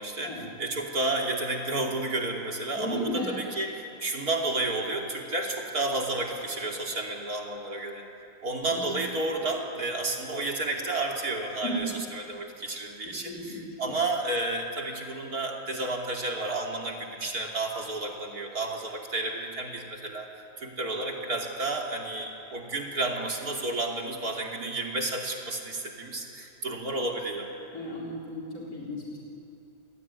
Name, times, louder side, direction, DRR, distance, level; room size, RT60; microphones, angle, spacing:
voice 1, 0.0-8.0 8.4-20.3 20.6-27.5, right 2 dB, 75° right, 0 dB, 3.5 m, -31 dB
voice 2, 2.7-3.4 8.6-9.0 11.6-11.9 13.1-13.9 27.7-29.2, equal, 75° left, -4 dB, 4.5 m, -35 dB
28.5 x 20.5 x 9.8 m, 2.6 s
omnidirectional pair, 1.6 m